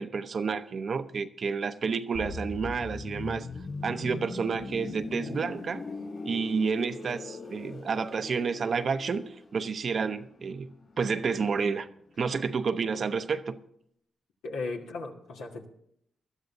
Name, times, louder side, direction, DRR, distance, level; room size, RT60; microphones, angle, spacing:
voice 1, 0.0-3.5 3.8-5.8 6.2-11.9 12.2-13.6, right 5 dB, 55° right, 0.7 m, -30 dB
sound 1, 2.1-11.8 12.1-12.3, left 3 dB, 50° left, 5.0 m, -41 dB
voice 2, 14.4-15.7, left 3 dB, 80° left, 1.7 m, -36 dB
21.0 x 12.5 x 2.7 m
hypercardioid pair, 45°, 0 cm